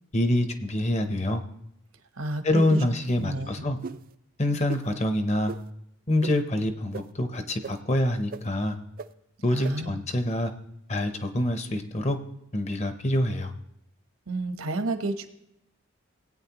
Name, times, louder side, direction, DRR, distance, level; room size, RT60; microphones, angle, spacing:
voice 1, 0.1-1.4 2.4-3.8 4.4-5.5 6.1-8.8 9.4-10.5 10.9-12.2 12.5-13.5, left 1 dB, 30° left, 8 dB, 0.8 m, -26 dB
voice 2, 2.1-2.6 3.2-3.5 9.5-9.9 14.3-15.3, right 2 dB, 75° right, 8 dB, 1.0 m, -30 dB
sound 1, 2.7-3.1 3.8-4.0 4.7-4.8 5.5-5.6 6.2-6.3 6.9-7.0 7.6-7.7 8.3-8.4 9.0-9.1 9.6-9.7, right 4 dB, 40° right, 0.3 m, -36 dB
18.0 x 8.8 x 3.0 m, 0.79 s
head